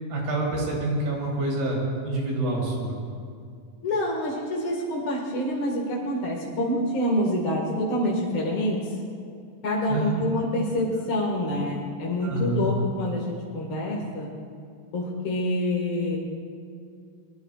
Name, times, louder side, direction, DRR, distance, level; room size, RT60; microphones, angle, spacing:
voice 1, 0.1-3.0 9.9-10.2 12.2-12.6, right 2 dB, 90° right, -3 dB, 5.3 m, -27 dB
voice 2, 3.8-9.0 9.6-14.3 14.9-16.2, left 1 dB, 45° left, -4 dB, 2.3 m, -27 dB
24.5 x 21.0 x 2.5 m, 2.3 s
omnidirectional pair, 4.0 m